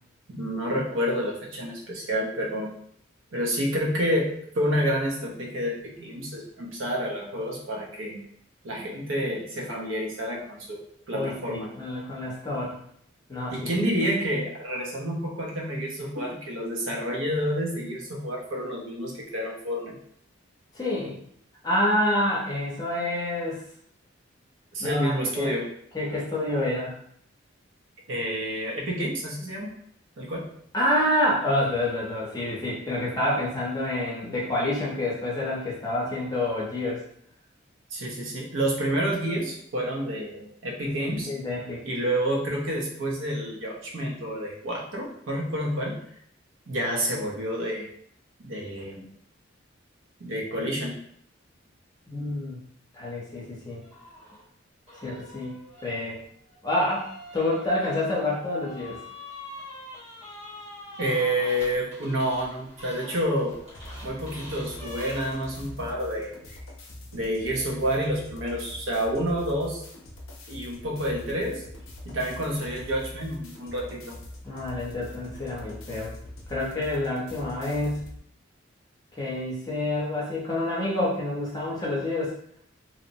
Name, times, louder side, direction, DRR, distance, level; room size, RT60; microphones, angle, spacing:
voice 1, 0.3-2.7 3.3-8.2 8.6-10.8 11.1-11.8 13.5-19.9 24.7-25.7 28.1-29.7 30.2-30.5 37.9-41.3 41.8-46.0 46.7-47.9 48.4-49.1 50.2-51.0 61.0-63.6 64.0-66.3 67.1-69.8 70.5-71.6 72.0-74.2, equal, 75° right, -2 dB, 0.7 m, -29 dB
voice 2, 11.1-12.8 13.3-13.7 20.7-21.2 21.6-23.6 24.9-25.5 25.9-27.0 30.7-37.0 40.8-41.8 52.1-52.6 52.9-53.8 55.0-56.2 56.6-57.1 57.3-59.0 74.4-76.1 76.5-78.1 79.2-82.4, left 1 dB, 20° left, -5 dB, 0.7 m, -28 dB
sound 1, 53.8-54.4 54.9-65.8, left 1 dB, 35° right, 0.9 m, -45 dB
sound 2, 63.7-78.2, left 1 dB, 90° left, 0.6 m, -43 dB
2.8 x 2.0 x 2.6 m, 0.66 s
head